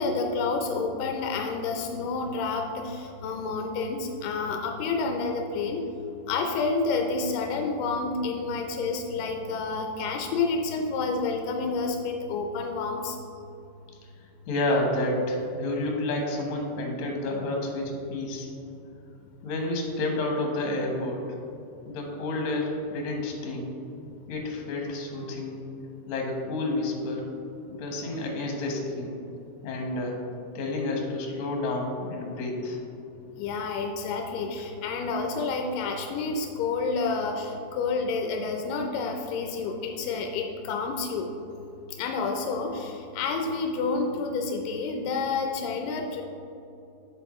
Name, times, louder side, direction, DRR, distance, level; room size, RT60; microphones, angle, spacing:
voice 1, 0.0-5.8 6.3-13.2 33.4-41.3 42.0-46.2, left 4 dB, 85° left, 3 dB, 2.2 m, -29 dB
voice 2, 14.5-18.5 19.4-21.2 21.9-23.7 24.3-25.6 26.1-27.2 27.7-29.2 29.6-30.2 30.5-32.8 34.6-34.7, left 2 dB, 70° left, 0 dB, 2.4 m, -30 dB
7.6 x 7.5 x 3.1 m, 2.8 s
omnidirectional pair, 3.8 m